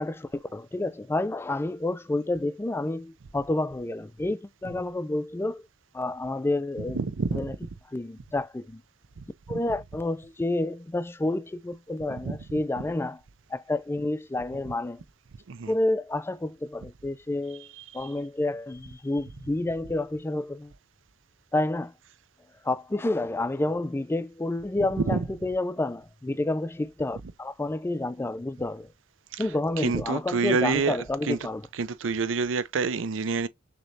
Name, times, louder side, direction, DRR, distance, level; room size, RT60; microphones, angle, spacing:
voice 1, 0.0-5.6 5.9-7.0 7.3-7.5 7.9-8.8 9.5-13.2 13.5-15.0 15.7-17.6 17.9-20.7 21.5-21.9 22.7-28.9 29.4-31.6, left 2 dB, 10° left, 0.3 m, -29 dB
voice 2, 6.9-7.5 9.2-9.6 12.1-12.4 12.8-12.9 15.5-15.7 17.6-18.1 25.0-25.3 29.3-31.4 31.7-33.5, right 4 dB, 75° right, 0.5 m, -28 dB
6.4 x 2.9 x 2.6 m
head